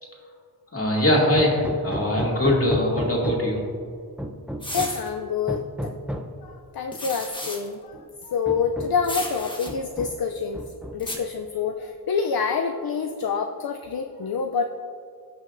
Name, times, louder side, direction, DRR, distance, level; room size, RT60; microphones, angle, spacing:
voice 1, 0.7-3.6, left 1 dB, 35° left, -3 dB, 2.4 m, -22 dB
Hammer, 1.4-3.6 4.2-5.1 5.5-6.4 7.4-7.5 7.9-8.0 8.5-9.1 9.7-10.3 10.5-11.2, right 1 dB, 5° right, 0.6 m, -33 dB
sound 1, 4.6-5.1 6.9-7.7 9.0-9.7 11.0-11.2, left 1 dB, 10° left, 1.3 m, -33 dB
voice 2, 4.7-5.6 6.4-7.8 8.3-10.6 10.9-14.6, left 6 dB, 65° left, 5 dB, 0.5 m, -27 dB
17.5 x 6.2 x 2.6 m, 2.3 s
wide cardioid pair, 80°, 39 cm